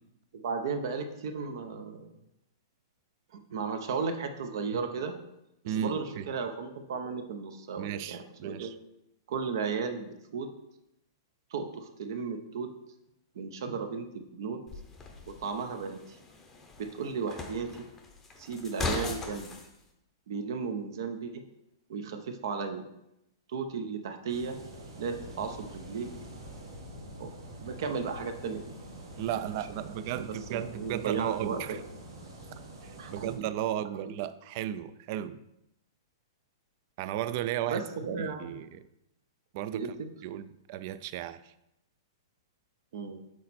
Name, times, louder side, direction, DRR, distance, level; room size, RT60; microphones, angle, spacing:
voice 1, 0.3-2.1 3.3-5.1 5.6-8.7 9.3-10.5 11.5-12.7 13.3-14.6 15.3-16.2 16.8-17.9 18.4-19.5 20.3-21.4 21.9-22.8 23.5-24.6 25.0-26.1 27.2-27.3 27.6-28.6 30.1-31.8 33.0-33.5 34.0-34.2 37.7-38.7 39.7-40.1 42.9-43.2, right 5 dB, 60° right, 7 dB, 0.7 m, -35 dB
voice 2, 5.7-6.3 7.8-8.7 29.2-31.8 32.8-35.4 37.0-37.8 38.2-38.8 39.5-39.9 40.2-41.5, right 11 dB, 40° right, 14 dB, 0.3 m, -35 dB
sound 1, 14.7-19.7, left 3 dB, 10° left, 0.7 m, -39 dB
sound 2, 24.3-33.4, right 1 dB, 85° right, 1.9 m, -46 dB
6.3 x 4.2 x 4.2 m, 0.85 s
hypercardioid pair, 160°, 2 cm